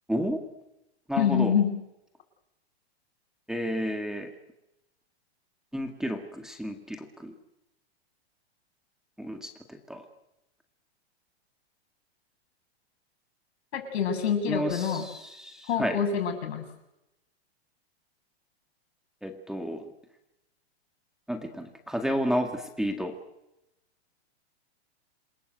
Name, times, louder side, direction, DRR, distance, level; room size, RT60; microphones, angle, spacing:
voice 1, 0.1-0.5 1.1-1.5 3.5-4.3 5.7-7.3 9.2-10.0 14.5-16.0 19.2-19.9 21.3-23.2, equal, ahead, 5 dB, 1.9 m, -31 dB
voice 2, 1.2-1.8 13.7-15.0 15.7-16.6, left 7 dB, 70° left, 6 dB, 7.5 m, -26 dB
28.0 x 21.5 x 8.0 m, 0.88 s
hypercardioid pair, 155°, 33 cm